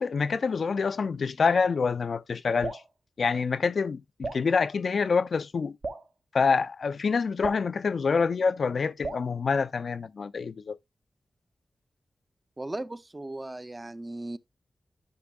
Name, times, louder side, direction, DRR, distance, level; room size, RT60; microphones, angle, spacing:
voice 1, 0.0-2.8 3.2-5.7 6.3-10.8, left 5 dB, 65° left, 0.3 m, -26 dB
Drip, 2.6-2.9 4.2-4.5 5.8-6.1 7.4-7.7 9.0-9.3, right 3 dB, 65° right, 1.0 m, -35 dB
voice 2, 12.6-14.4, right 2 dB, 20° right, 0.5 m, -37 dB
11.5 x 6.0 x 2.3 m
wide cardioid pair, 115°, 0 cm